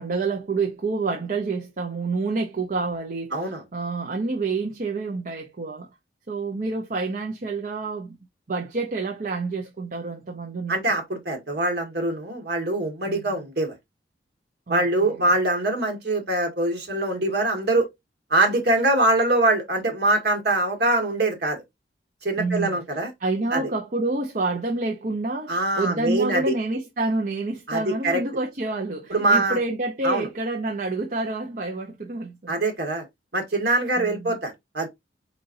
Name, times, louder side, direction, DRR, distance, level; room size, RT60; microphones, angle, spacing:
voice 1, 0.0-5.9 6.3-8.2 8.5-11.0 13.1-13.5 14.7-15.3 22.4-22.8 23.2-32.6 34.0-34.3, right 3 dB, 50° right, 0.8 m, -28 dB
voice 2, 3.3-3.6 10.7-13.7 14.7-17.9 18.3-21.6 22.2-23.1 23.5-23.6 25.5-26.5 27.7-28.2 29.1-29.6 30.0-30.3 32.5-33.1 33.3-34.9, right 2 dB, 65° right, 1.8 m, -23 dB
4.4 x 4.1 x 2.6 m
head